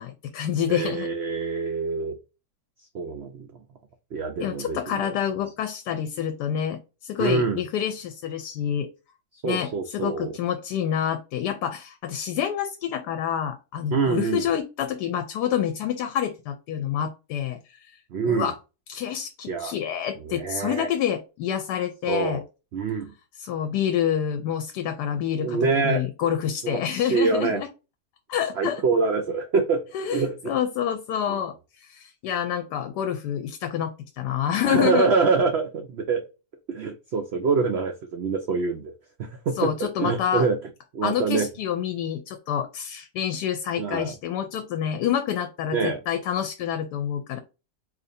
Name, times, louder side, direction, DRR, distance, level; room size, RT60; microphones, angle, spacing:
voice 1, 0.0-1.1 4.4-8.9 9.4-17.9 18.2-18.5 18.9-22.4 23.4-27.7 28.3-28.8 29.9-31.5 31.8-35.1 39.6-40.5 41.0-47.4, left 9 dB, 85° left, 8 dB, 1.2 m, -28 dB
voice 2, 0.7-2.2 2.9-3.5 4.1-5.1 7.2-7.6 9.4-10.3 13.9-14.5 18.1-18.5 19.5-19.7 20.2-20.9 22.1-22.4 22.7-23.1 25.4-26.1 26.6-27.6 28.6-29.8 30.1-30.4 31.3-31.4 34.6-36.3 36.7-38.9 39.2-40.6 40.9-41.5 43.8-44.1 45.7-46.0, right 4 dB, 80° right, 6 dB, 0.5 m, -25 dB
4.3 x 2.6 x 2.6 m, 0.30 s
omnidirectional pair, 1.7 m